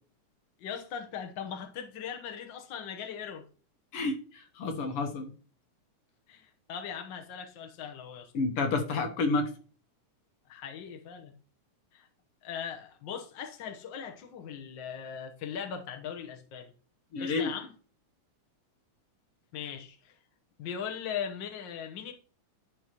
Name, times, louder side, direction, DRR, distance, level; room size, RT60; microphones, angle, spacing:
voice 1, 0.6-3.5 6.3-8.3 10.5-11.3 11.9-12.1 12.4-16.7 17.2-17.7 19.5-20.2 20.6-22.1, left 7 dB, 80° left, 1.0 m, -39 dB
voice 2, 4.6-5.3 8.3-9.5 17.1-17.5, left 3 dB, 60° left, 1.6 m, -29 dB
11.0 x 5.3 x 3.0 m
omnidirectional pair, 3.6 m